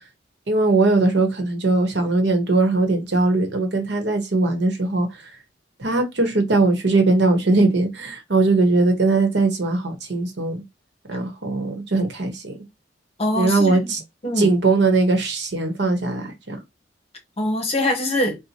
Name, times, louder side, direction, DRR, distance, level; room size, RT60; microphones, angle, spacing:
voice 1, 0.5-5.3 5.8-10.6 11.1-12.5 13.3-14.0 14.4-16.6, right 2 dB, 65° right, 1.0 m, -20 dB
voice 2, 13.2-13.9 14.2-14.5 17.4-18.4, left 1 dB, 35° left, 1.0 m, -23 dB
4.2 x 2.1 x 2.8 m
head